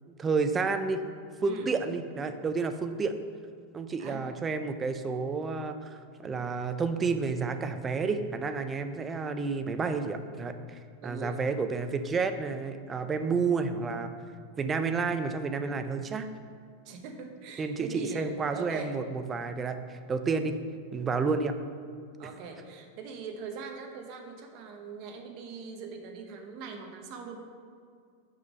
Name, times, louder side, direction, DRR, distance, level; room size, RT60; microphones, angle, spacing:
voice 1, 0.2-1.0 1.4-3.1 3.7-14.1 14.6-16.3 17.6-20.6 20.9-21.5, right 4 dB, 15° right, 8 dB, 0.4 m, -30 dB
voice 2, 11.0-11.4 16.8-18.9 22.2-27.4, right 5 dB, 40° right, 3 dB, 1.0 m, -41 dB
6.7 x 5.3 x 6.3 m, 2.2 s
supercardioid pair, 165°, 0 cm